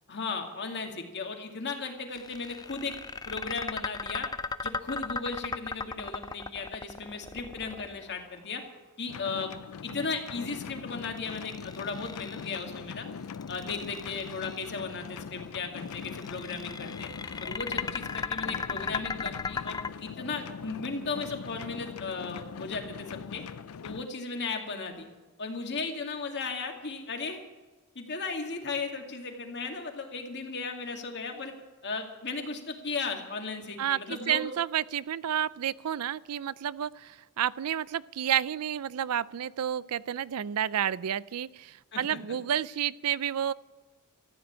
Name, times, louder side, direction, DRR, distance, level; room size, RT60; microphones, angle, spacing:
voice 1, 0.1-3.0 3.3-4.3 4.6-8.6 9.0-9.5 9.8-13.1 13.5-17.1 17.4-23.4 23.8-25.1 25.4-27.4 28.0-31.5 31.8-34.5 41.9-42.2, left 4 dB, 50° left, 3 dB, 2.3 m, -36 dB
sound 1, 2.1-8.3 11.2-12.7 13.3-14.6 15.9-19.9, left 4 dB, 20° left, 0.4 m, -36 dB
sound 2, 9.1-24.1, left 6 dB, 75° left, 0.4 m, -42 dB
voice 2, 33.8-43.5, right 10 dB, 75° right, 20 dB, 0.4 m, -30 dB
14.5 x 9.5 x 8.3 m, 1.2 s
head